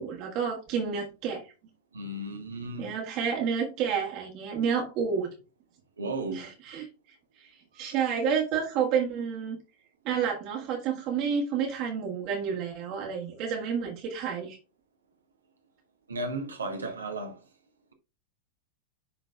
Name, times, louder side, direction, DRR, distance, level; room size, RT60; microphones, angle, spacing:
voice 1, 0.0-1.4 2.8-5.3 6.3-6.9 7.4-7.5 7.7-9.6 10.0-14.6, right 7 dB, 40° right, 1.6 m, -30 dB
voice 2, 1.9-2.9 6.0-6.5 16.1-17.4, right 2 dB, 75° right, 1.4 m, -34 dB
11.0 x 3.8 x 2.3 m
figure-of-eight pair, 90°, 0 cm